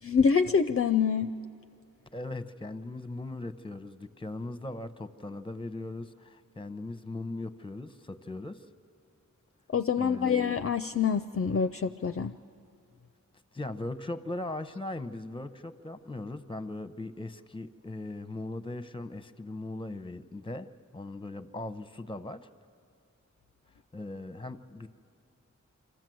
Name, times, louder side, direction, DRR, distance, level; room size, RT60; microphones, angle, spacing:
voice 1, 0.0-1.4 9.7-12.3, left 6 dB, 45° left, 11 dB, 0.4 m, -26 dB
voice 2, 2.1-8.6 10.0-10.4 13.5-22.5 23.9-24.9, left 2 dB, 15° left, 13 dB, 0.7 m, -39 dB
26.0 x 13.5 x 7.7 m, 2.4 s
wide cardioid pair, 45°, 31 cm